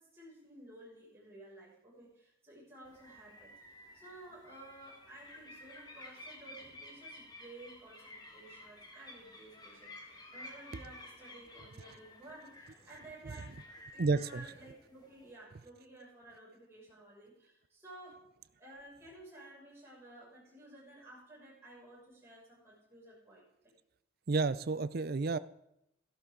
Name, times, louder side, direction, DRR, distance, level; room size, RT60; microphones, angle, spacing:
voice 1, 0.0-13.6 13.9-18.2 18.6-23.4, right 1 dB, 15° right, -7 dB, 6.4 m, -54 dB
sound 1, 2.8-15.3, left 1 dB, 20° left, 1.7 m, -53 dB
voice 2, 14.0-14.4 24.3-25.4, right 4 dB, 50° right, 15 dB, 0.5 m, -31 dB
14.5 x 12.0 x 3.9 m, 0.80 s
head